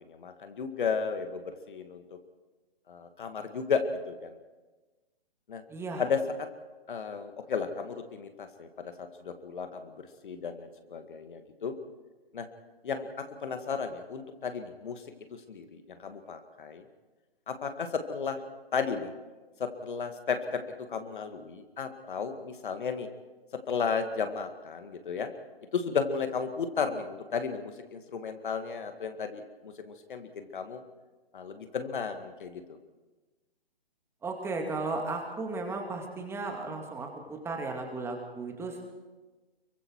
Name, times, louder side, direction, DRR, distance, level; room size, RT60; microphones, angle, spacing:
voice 1, 0.0-2.2 2.9-4.4 5.5-5.6 6.0-6.5 6.9-11.7 12.3-12.5 12.8-15.0 15.3-16.8 17.5-18.4 18.7-19.1 19.6-20.6 20.9-23.1 23.7-25.3 25.7-30.8 31.3-32.8, left 5 dB, 55° left, 7 dB, 2.0 m, -34 dB
voice 2, 5.7-6.0 34.2-38.9, right 3 dB, 10° right, 2 dB, 2.2 m, -35 dB
26.0 x 23.5 x 4.7 m, 1.2 s
figure-of-eight pair, 140°, 31 cm